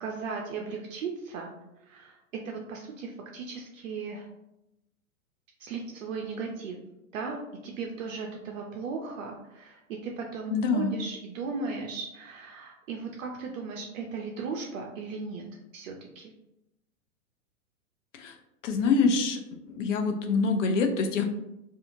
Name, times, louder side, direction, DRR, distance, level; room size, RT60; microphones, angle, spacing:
voice 1, 0.0-1.5 1.9-4.3 5.6-6.8 7.1-15.4 15.7-16.3, right 4 dB, 65° right, 0 dB, 0.6 m, -37 dB
voice 2, 10.5-11.0 18.1-18.4 18.6-19.4 19.7-21.2, left 4 dB, 60° left, 5 dB, 0.6 m, -25 dB
2.7 x 2.4 x 2.6 m, 0.88 s
hypercardioid pair, 120°, 43 cm